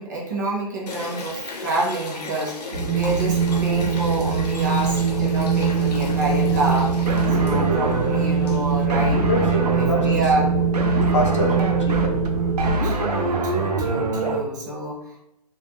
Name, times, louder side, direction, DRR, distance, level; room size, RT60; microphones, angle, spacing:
voice 1, 0.0-6.9 7.3-10.5 12.8-15.2, right 1 dB, 30° right, 0.5 m, -28 dB
sound 1, 0.9-8.9, left 3 dB, 85° left, 0.7 m, -36 dB
Wind, 2.7-12.7, right 6 dB, 60° right, 0.9 m, -22 dB
sound 2, 7.1-14.4, right 2 dB, 80° right, 0.5 m, -25 dB
voice 2, 7.3-7.9 9.2-10.6 11.1-12.4 14.1-14.4, left 3 dB, 50° left, 0.4 m, -28 dB
2.3 x 2.2 x 2.7 m
hypercardioid pair, 160°, 20 cm